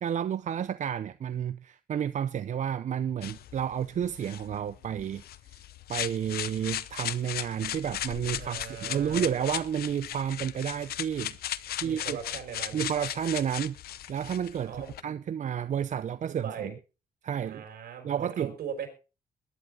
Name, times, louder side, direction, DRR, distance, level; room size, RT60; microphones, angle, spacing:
voice 1, 0.0-5.2 5.9-12.2 12.7-13.8 14.1-14.8 15.0-16.7 17.2-17.6 18.0-18.5, right 9 dB, 50° right, 0.6 m, -31 dB
sound 1, 3.2-15.0, left 12 dB, 80° left, 0.7 m, -37 dB
voice 2, 8.4-9.3 11.8-12.8 14.6-15.2 16.3-16.7 17.4-18.9, right 8 dB, 80° right, 5.4 m, -39 dB
21.0 x 11.0 x 3.7 m
cardioid pair, 100°, 16 cm